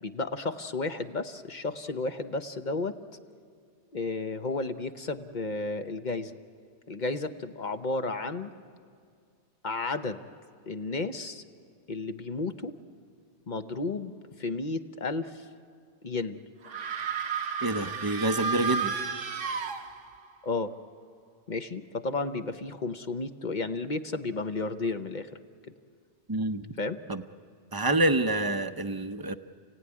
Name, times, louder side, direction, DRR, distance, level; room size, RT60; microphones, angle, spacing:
voice 1, 0.0-3.0 3.9-6.4 6.9-8.5 9.6-10.2 10.7-11.4 11.9-12.8 13.5-15.5 16.0-16.4 20.4-20.7 21.5-25.3 26.8-27.0, left 3 dB, 45° left, 8 dB, 0.9 m, -32 dB
sound 1, 16.6-20.3, right 5 dB, 90° right, 1.4 m, -32 dB
voice 2, 17.6-18.9 26.3-26.6 27.1-27.2 27.7-29.3, right 2 dB, 25° right, 9 dB, 0.6 m, -27 dB
29.5 x 17.0 x 9.7 m, 2.2 s
omnidirectional pair, 1.2 m